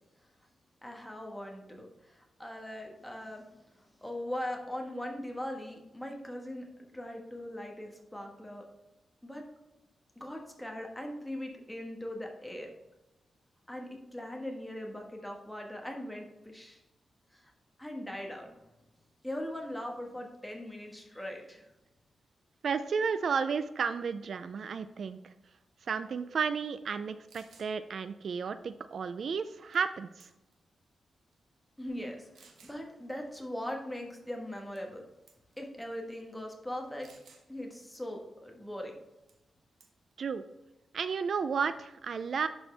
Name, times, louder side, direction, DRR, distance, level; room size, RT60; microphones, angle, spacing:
voice 1, 0.8-3.4 3.8-6.7 6.9-8.6 9.2-9.4 10.1-12.7 13.7-16.8 17.3-17.5 17.8-18.6 19.2-21.7 31.8-35.0 35.6-37.1 37.5-38.9, left 1 dB, 5° left, 1 dB, 1.4 m, -40 dB
voice 2, 22.6-25.3 25.8-30.3 40.2-40.4 40.9-42.5, right 6 dB, 65° right, 12 dB, 0.3 m, -33 dB
sound 1, 27.3-27.7 29.7-30.0 30.2-30.6 31.3-31.4 32.3-32.8 34.8-35.0 35.3-35.6 37.0-37.5 39.3-39.5 39.8-40.1, right 5 dB, 90° right, 1.1 m, -58 dB
11.0 x 4.4 x 3.3 m, 0.97 s
wide cardioid pair, 105°, 0 cm